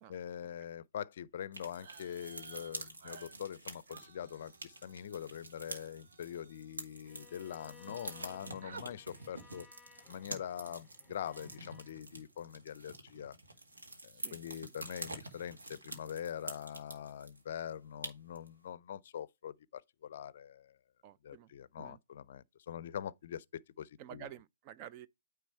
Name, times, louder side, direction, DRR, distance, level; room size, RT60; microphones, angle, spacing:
voice 1, 0.1-9.7 10.1-13.4 14.1-20.8 21.2-24.3, left 9 dB, 55° left, 0.4 m, -44 dB
sound 1, 1.5-17.4 17.7-17.8 18.0-18.5, right 2 dB, 85° right, 1.9 m, -48 dB
sound 2, 1.7-7.3 7.6-8.3 8.6-8.9, right 5 dB, 55° right, 0.9 m, -56 dB
Bowed string instrument, 7.0-12.0, left 6 dB, 15° left, 0.7 m, -60 dB
voice 2, 21.0-21.5 21.8-22.0 24.0-25.1, right 11 dB, 30° right, 0.3 m, -50 dB
9.3 x 3.3 x 4.4 m
hypercardioid pair, 135°, 0 cm